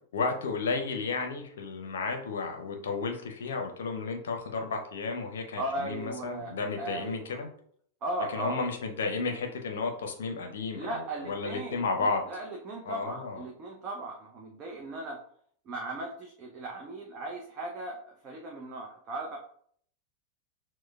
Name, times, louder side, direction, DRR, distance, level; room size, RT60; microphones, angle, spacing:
voice 1, 0.1-7.5 8.3-12.2 12.9-13.4, left 4 dB, 60° left, 4 dB, 0.6 m, -33 dB
voice 2, 5.6-7.4 8.0-8.6 10.7-15.2 15.7-19.4, right 2 dB, 30° right, 0 dB, 0.6 m, -37 dB
6.1 x 2.1 x 2.3 m, 0.62 s
figure-of-eight pair, 90°, 0 cm